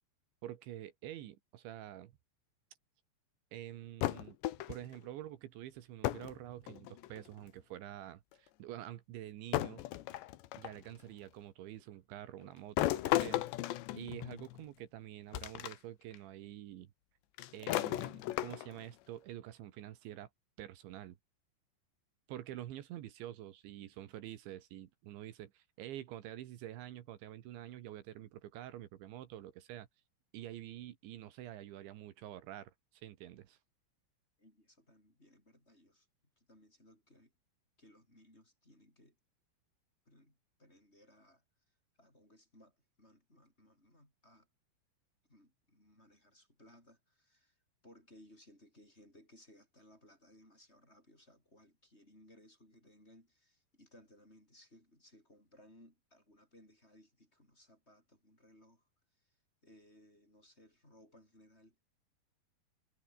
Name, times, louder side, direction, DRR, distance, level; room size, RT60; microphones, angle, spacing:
voice 1, 0.4-2.2 3.5-4.4 4.7-9.8 10.6-13.5 13.9-16.9 17.5-20.3 20.6-21.2 22.3-29.9 30.3-33.6, right 13 dB, 75° right, 3.8 m, -47 dB
sound 1, 4.0-5.0 6.0-6.4 6.7-7.3 8.3-8.4 9.5-10.8 12.8-14.6 15.3-15.7 16.1-16.2 17.4-18.9, left 15 dB, 75° left, 3.3 m, -35 dB
voice 2, 34.4-36.1 36.4-37.3 37.8-39.2 40.1-44.5 45.3-47.6 47.8-58.9 59.2-61.8, left 1 dB, 15° left, 6.9 m, -63 dB
omnidirectional pair, 5.4 m